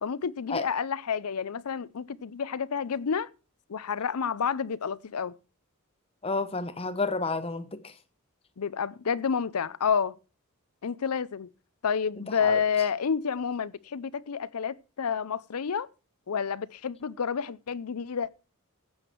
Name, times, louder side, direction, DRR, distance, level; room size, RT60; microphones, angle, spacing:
voice 1, 0.0-3.3 3.7-5.3 8.6-10.2 10.8-11.5 11.8-15.9 16.3-18.3, left 6 dB, 80° left, 0.6 m, -29 dB
voice 2, 6.2-7.9 12.4-12.6, left 3 dB, 25° left, 0.9 m, -30 dB
15.0 x 8.1 x 4.5 m
head